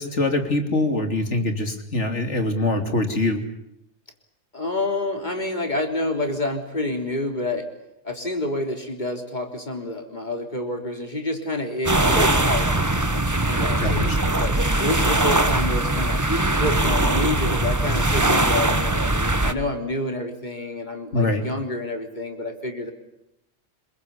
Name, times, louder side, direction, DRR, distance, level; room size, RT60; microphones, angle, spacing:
voice 1, 0.0-3.4 13.8-14.2 21.1-21.4, left 2 dB, 90° left, 5 dB, 3.3 m, -23 dB
voice 2, 4.5-7.7 8.0-16.2 16.6-19.0 19.4-22.9, left 1 dB, 40° left, 4 dB, 3.7 m, -28 dB
sound 1, 11.9-19.5, right 1 dB, 15° right, 1.2 m, -21 dB
26.5 x 22.5 x 8.4 m, 0.82 s
omnidirectional pair, 1.2 m